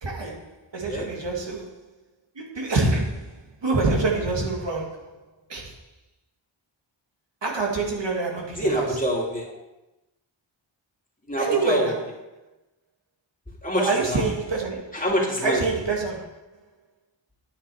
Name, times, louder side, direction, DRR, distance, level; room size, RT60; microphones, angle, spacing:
voice 1, 0.0-1.8 2.4-5.2 5.5-5.8 7.4-8.9 11.4-12.0 13.7-15.0 15.4-16.4, right 3 dB, 60° right, 0 dB, 2.1 m, -26 dB
voice 2, 8.6-9.5 11.3-11.9 13.6-14.2 14.9-15.6, equal, 15° left, -3 dB, 2.7 m, -25 dB
10.0 x 9.8 x 4.8 m, 0.97 s
wide cardioid pair, 110°, 48 cm